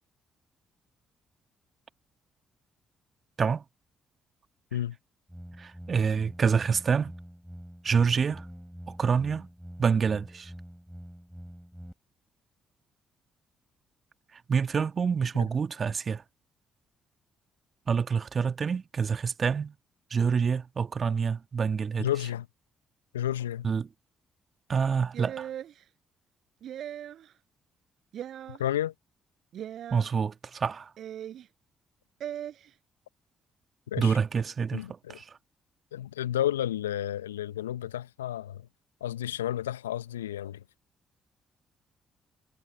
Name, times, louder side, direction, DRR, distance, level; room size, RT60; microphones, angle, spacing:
sound 1, 5.3-11.9, equal, ahead, 7.7 m, -46 dB
voice 1, 5.6-7.1 7.8-8.4 8.9-9.5 9.8-10.5 14.5-16.2 17.9-19.7 20.1-22.1 23.6-23.9 24.7-25.5 29.9-30.9 34.0-34.8 35.1-35.2, right 6 dB, 45° right, 1.7 m, -27 dB
voice 2, 22.0-22.5 23.1-23.7 28.5-28.9 33.9-34.2 34.7-35.2 35.9-38.6 39.0-40.6, left 12 dB, 85° left, 0.8 m, -31 dB
sound 2, 25.1-25.7 26.6-27.2 28.1-28.6 29.5-30.1 31.0-31.4 32.2-32.5, right 10 dB, 60° right, 4.8 m, -38 dB
figure-of-eight pair, 40°, 0 cm